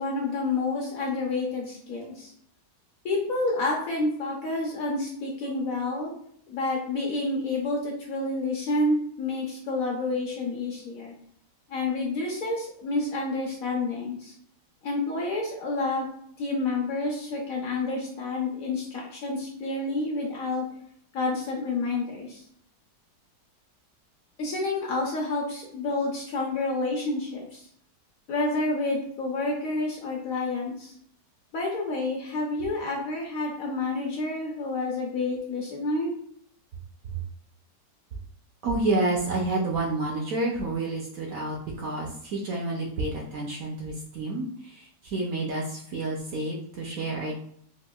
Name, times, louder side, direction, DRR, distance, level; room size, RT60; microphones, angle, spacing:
voice 1, 0.0-2.3 3.0-6.1 6.5-11.1 11.7-14.3 14.8-16.1 16.4-20.6 21.1-22.4 24.4-27.6 28.3-30.9 31.5-36.1, left 2 dB, 65° left, -1 dB, 0.9 m, -29 dB
voice 2, 38.6-47.3, right 2 dB, 65° right, -2 dB, 0.9 m, -29 dB
4.4 x 2.4 x 2.3 m, 0.65 s
omnidirectional pair, 1.9 m